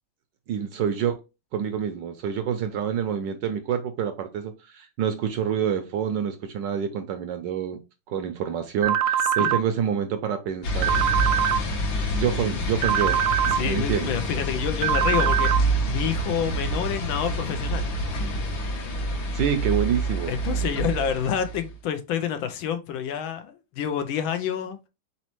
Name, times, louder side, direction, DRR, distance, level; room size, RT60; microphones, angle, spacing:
voice 1, 0.5-1.2 1.5-7.8 8.1-11.1 12.1-14.1 19.1-20.3, right 8 dB, 70° right, 1.1 m, -27 dB
sound 1, 8.8-9.6 10.8-11.6 12.8-13.6 14.8-15.6, right 10 dB, 90° right, 0.8 m, -23 dB
sound 2, 10.6-21.7, right 1 dB, 55° left, 1.6 m, -27 dB
voice 2, 13.5-17.9 20.3-24.9, left 8 dB, 75° left, 1.4 m, -28 dB
4.2 x 4.1 x 3.0 m
omnidirectional pair, 2.3 m